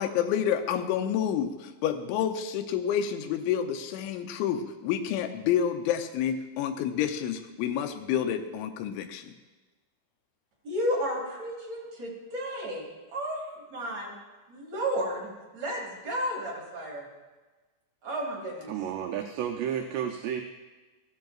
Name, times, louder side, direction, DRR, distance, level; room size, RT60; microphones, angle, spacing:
voice 1, 0.0-9.4, left 9 dB, 85° left, 7 dB, 3.1 m, -29 dB
voice 2, 10.6-13.4 13.7-14.1 14.5-17.0 18.0-18.7, equal, 45° right, -3 dB, 3.2 m, -32 dB
voice 3, 18.7-20.4, right 9 dB, 80° right, 3 dB, 2.6 m, -31 dB
15.5 x 13.0 x 2.5 m, 1.2 s
omnidirectional pair, 5.2 m